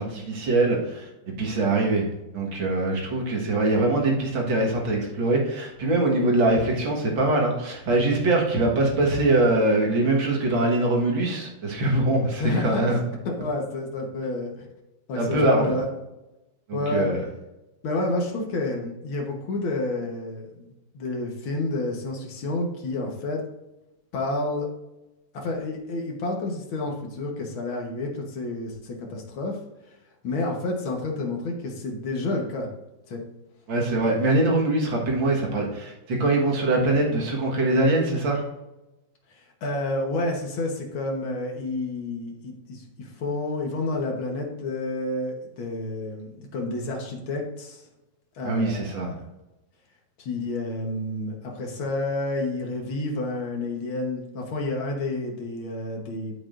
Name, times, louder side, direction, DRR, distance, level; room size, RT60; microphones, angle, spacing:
voice 1, 0.0-2.1 2.3-13.0 15.2-15.7 16.7-17.2 33.7-38.4 48.4-49.1, right 2 dB, 70° right, -1 dB, 2.3 m, -23 dB
voice 2, 12.4-13.0 13.3-14.7 15.1-15.9 16.7-17.1 17.8-23.4 24.1-24.7 25.3-29.6 30.2-32.7 33.1-33.2 34.0-34.3 39.3-47.8 48.4-49.2 50.2-56.3, left 2 dB, 80° left, 0 dB, 2.0 m, -30 dB
8.8 x 8.7 x 2.5 m, 0.99 s
omnidirectional pair, 2.2 m